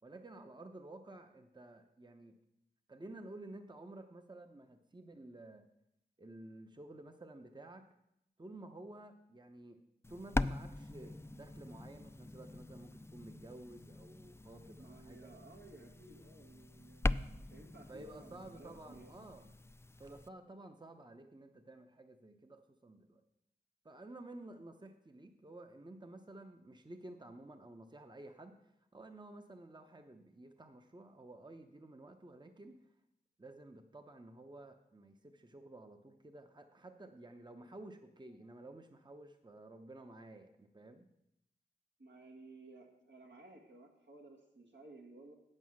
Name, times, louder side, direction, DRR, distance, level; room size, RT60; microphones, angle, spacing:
voice 1, 0.0-2.4 2.9-5.6 6.2-7.9 8.4-9.8 10.1-15.3 17.9-19.5 20.0-23.2 23.8-32.8 33.4-41.1, right 2 dB, 25° right, 6 dB, 0.8 m, -52 dB
sound 1, 10.0-20.3, left 2 dB, 15° left, 0.3 m, -42 dB
voice 2, 14.8-19.1 42.0-45.3, right 2 dB, 75° right, 1 dB, 1.8 m, -56 dB
8.4 x 7.6 x 6.3 m, 0.81 s
wide cardioid pair, 45°, 18 cm